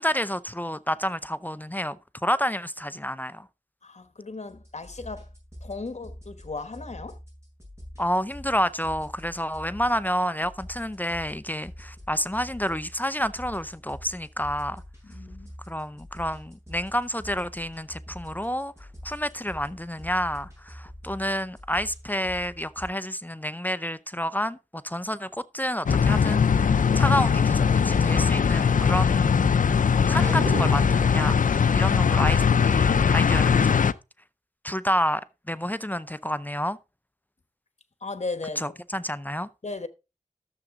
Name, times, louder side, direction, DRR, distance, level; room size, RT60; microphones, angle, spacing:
voice 1, 0.0-3.5 8.0-14.8 15.7-18.7 19.0-29.4 30.1-33.9 34.6-36.8 38.6-39.5, equal, 15° left, 0.5 m, -29 dB
voice 2, 3.8-5.3 5.6-7.2 15.0-15.6 38.0-39.0 39.6-39.9, left 3 dB, 60° left, 1.1 m, -36 dB
sound 1, 4.5-22.9, equal, 20° right, 7.5 m, -45 dB
sound 2, 25.9-33.9, left 6 dB, 90° left, 0.4 m, -21 dB
sound 3, 30.2-31.2, right 4 dB, 80° right, 0.9 m, -33 dB
13.0 x 7.2 x 3.6 m
wide cardioid pair, 55°, 13 cm